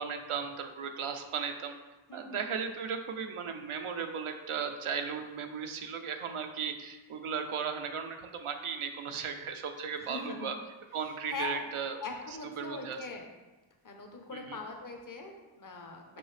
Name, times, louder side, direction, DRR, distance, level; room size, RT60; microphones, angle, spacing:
voice 1, 0.0-1.8 2.1-10.5 10.9-12.0 12.6-13.0 14.3-14.6, right 6 dB, 90° right, 5 dB, 0.7 m, -36 dB
voice 2, 2.1-2.6 10.0-10.5 11.0-11.6 12.0-13.3 13.8-16.2, left 4 dB, 40° left, 2 dB, 0.9 m, -42 dB
5.5 x 5.3 x 3.3 m, 1.2 s
wide cardioid pair, 85°, 49 cm